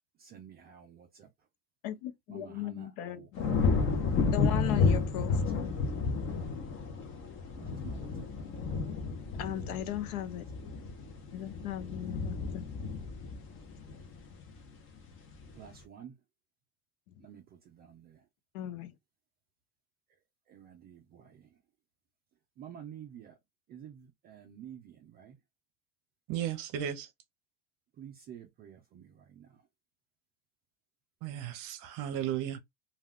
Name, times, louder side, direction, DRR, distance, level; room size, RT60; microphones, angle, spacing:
voice 1, 0.2-1.3 2.3-4.2 5.6-5.8 7.5-8.6 10.3-10.8 15.5-16.2 17.2-18.3 20.5-21.6 22.6-23.4 23.7-25.4 27.9-29.6, right 9 dB, 25° right, 0.3 m, -51 dB
voice 2, 1.8-3.6 4.3-5.7 9.4-10.5 11.3-12.7 18.5-18.9, left 11 dB, 75° left, 0.7 m, -37 dB
sound 1, 3.4-14.6 15.1-15.5, left 4 dB, 30° left, 0.6 m, -31 dB
voice 3, 26.3-27.1 31.2-32.6, right 10 dB, 45° right, 0.7 m, -35 dB
2.4 x 2.2 x 3.5 m
supercardioid pair, 125°, 44 cm